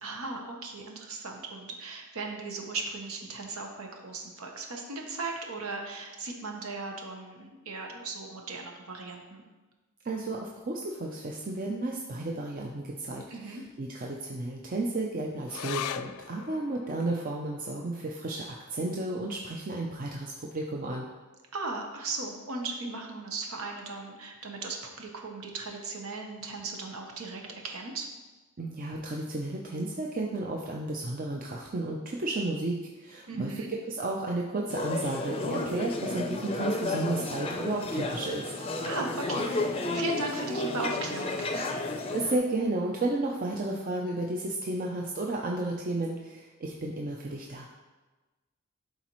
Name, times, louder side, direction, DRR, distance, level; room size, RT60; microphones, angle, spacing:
voice 1, 0.0-9.4 13.3-13.6 21.5-28.1 33.3-33.7 38.9-41.5, right 3 dB, 80° right, 1 dB, 1.0 m, -37 dB
voice 2, 10.0-21.1 28.6-33.5 33.9-38.5 42.1-47.7, right 2 dB, 40° right, -1 dB, 0.5 m, -33 dB
sound 1, 15.5-22.2 22.6-22.7 23.0-23.7 24.2-24.3, left 10 dB, 80° left, 0.3 m, -43 dB
sound 2, 34.7-42.4, left 2 dB, 25° left, 0.5 m, -32 dB
11.5 x 4.1 x 3.1 m, 1.2 s
head